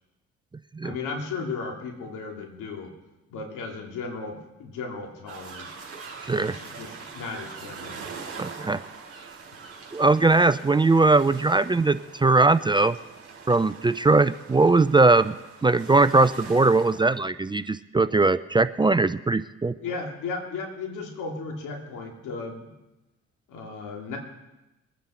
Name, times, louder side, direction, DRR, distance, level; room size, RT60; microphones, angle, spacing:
voice 1, 0.8-2.9 3.3-5.7 6.3-8.0 19.8-22.6 23.5-24.2, left 4 dB, 85° left, 2 dB, 2.8 m, -35 dB
sound 1, 5.3-17.2, right 5 dB, 50° right, 4.1 m, -43 dB
voice 2, 8.4-8.8 9.9-13.0 13.5-15.3 15.6-19.7, right 3 dB, 15° right, 14 dB, 0.4 m, -20 dB
23.5 x 9.3 x 4.4 m, 0.98 s
cardioid pair, 90°, 30 cm